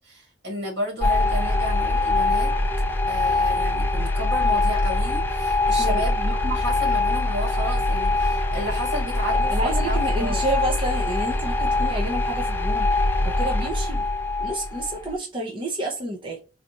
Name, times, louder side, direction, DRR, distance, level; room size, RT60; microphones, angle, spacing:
voice 1, 0.0-2.5 3.1-10.4, right 1 dB, 70° right, 2.2 m, -32 dB
sound 1, 1.0-15.1, left 2 dB, 10° left, 0.5 m, -23 dB
voice 2, 9.5-12.9 13.2-14.0 14.4-16.4, right 1 dB, 30° right, 0.8 m, -29 dB
4.1 x 2.7 x 3.0 m
head